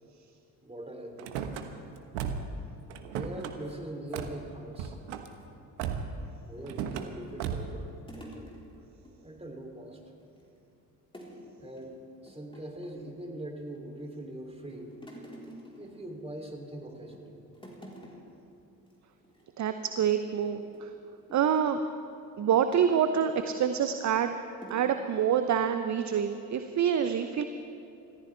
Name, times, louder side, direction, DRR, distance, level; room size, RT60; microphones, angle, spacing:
voice 1, 0.6-1.5 3.0-5.0 6.5-8.5 9.2-10.0 11.6-15.0 15.8-17.4, right 1 dB, 10° right, 1 dB, 3.1 m, -42 dB
Car / Slam, 1.2-1.6 2.1-2.6 2.9-3.5 4.1-4.4 4.7-5.3 5.8-6.2 6.7-7.1 7.4-7.8, right 7 dB, 65° right, 1.2 m, -35 dB
sound 1, 6.6-9.2 9.5-9.6 9.9-10.6 11.1-11.5 11.8-11.9 12.3-13.1 13.6-14.1 14.5-16.6 17.0-17.3 17.5-18.4 18.8-18.9 19.2-19.4 19.9-21.7 22.7-23.4 24.0-24.2 24.6-25.0, equal, 10° left, 3.9 m, -49 dB
voice 2, 19.6-20.9 21.3-21.8 22.4-24.3 24.7-27.4, right 8 dB, 35° right, 9 dB, 0.8 m, -26 dB
28.0 x 14.5 x 3.4 m, 2.7 s
figure-of-eight pair, 50°, 49 cm